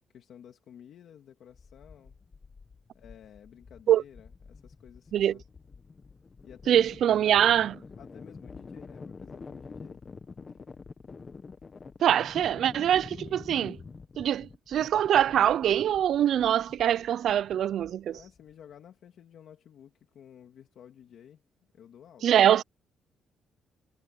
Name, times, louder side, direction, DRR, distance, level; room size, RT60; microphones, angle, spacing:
voice 1, 0.1-2.2 2.9-5.4 6.4-7.6 8.0-10.0 10.5-10.7 18.1-21.4 21.7-22.3, left 9 dB, 55° left, 2.4 m, -52 dB
sound 1, 1.5-18.5, left 4 dB, 25° left, 1.1 m, -47 dB
voice 2, 6.7-7.7 12.0-13.8 14.2-18.2 22.2-22.6, right 10 dB, 55° right, 0.4 m, -23 dB
cardioid pair, 175°, 0 cm